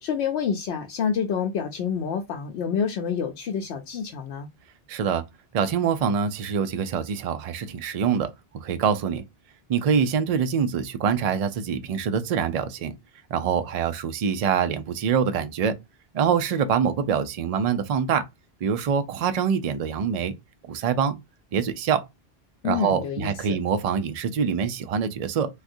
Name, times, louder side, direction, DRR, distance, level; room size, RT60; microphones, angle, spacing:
voice 1, 0.0-4.5 22.6-23.6, left 7 dB, 85° left, 0.8 m, -28 dB
voice 2, 4.9-5.2 5.5-9.2 9.7-12.9 13.3-15.7 16.1-18.2 18.6-20.3 20.7-21.2 21.5-22.0 22.6-25.5, right 7 dB, 55° right, 0.4 m, -25 dB
3.5 x 2.3 x 2.6 m
omnidirectional pair, 1.1 m